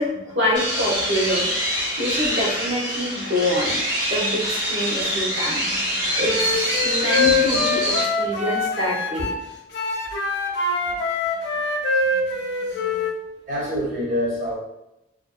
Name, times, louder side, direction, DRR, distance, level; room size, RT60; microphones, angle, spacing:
voice 1, 0.0-1.5 2.0-3.8 4.1-9.3 12.1-12.2 12.6-13.0, left 1 dB, 85° right, -6 dB, 0.9 m, -26 dB
sound 1, 0.5-8.0, equal, 70° right, 1.3 m, -25 dB
Wind instrument woodwind instrument, 6.2-9.4 9.7-13.1, left 3 dB, 60° left, 0.3 m, -24 dB
voice 2, 13.5-14.6, equal, 40° right, -5 dB, 0.5 m, -26 dB
2.5 x 2.2 x 2.3 m, 0.88 s
head